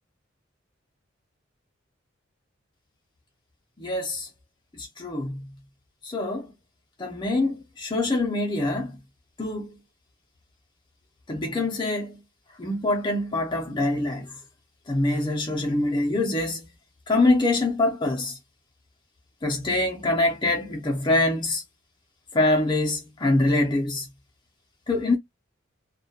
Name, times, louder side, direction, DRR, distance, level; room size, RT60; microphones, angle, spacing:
voice 1, 3.8-4.3 4.7-5.4 6.0-6.5 7.0-9.0 9.4-9.7 11.3-12.2 12.6-14.3 14.9-16.7 17.1-18.4 19.4-21.6 22.3-24.1 24.9-25.2, left 2 dB, 25° left, 0.5 m, -24 dB
2.2 x 2.2 x 2.7 m
head